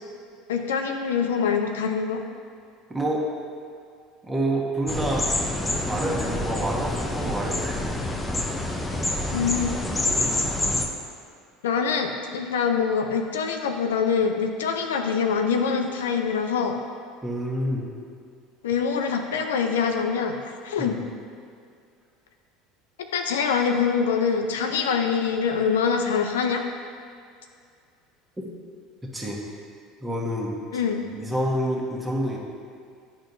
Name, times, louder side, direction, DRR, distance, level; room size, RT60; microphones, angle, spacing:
voice 1, 0.5-2.2 9.3-9.8 11.6-16.8 18.6-21.0 23.0-26.7 30.7-31.1, left 6 dB, 85° left, 5 dB, 0.5 m, -24 dB
voice 2, 2.9-3.2 4.2-5.3 5.9-7.8 8.3-8.5 10.2-10.5 17.2-17.9 20.8-20.9 29.0-29.4 30.0-30.6 31.1-32.4, right 1 dB, 15° right, -3 dB, 1.4 m, -28 dB
sound 1, 4.9-10.9, left 1 dB, 15° left, 0.7 m, -27 dB
10.0 x 4.3 x 2.7 m, 2.3 s
hypercardioid pair, 85°, 0 cm